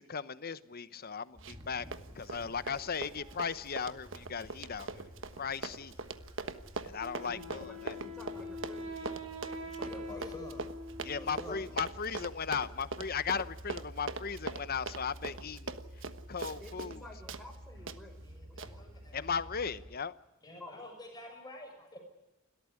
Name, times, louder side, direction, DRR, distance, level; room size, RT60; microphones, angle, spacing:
voice 1, 0.0-1.9 2.2-5.1 5.4-5.9 6.8-8.0 11.0-15.7 16.3-17.0 19.1-20.1, left 6 dB, 45° left, 14 dB, 0.9 m, -37 dB
sound 1, 1.3-20.0, equal, 20° right, 2.3 m, -51 dB
Run, 1.4-1.7 1.9-17.0 17.3-17.4 17.9-18.0 18.6-18.7, right 4 dB, 65° right, 1.3 m, -41 dB
Wind instrument woodwind instrument, 7.0-11.8, left 1 dB, 90° right, 3.6 m, -44 dB
voice 2, 7.3-9.2 9.6-10.3 11.3-11.6 16.6-18.2 18.5-18.8 20.6-20.8, left 1 dB, 5° left, 1 dB, 6.2 m, -51 dB
voice 3, 9.8-10.7 11.1-11.7 17.7-17.9 18.2-19.2 19.7-19.8 20.4-22.0, left 1 dB, 20° left, 3 dB, 6.3 m, -48 dB
29.5 x 13.5 x 9.8 m, 0.99 s
head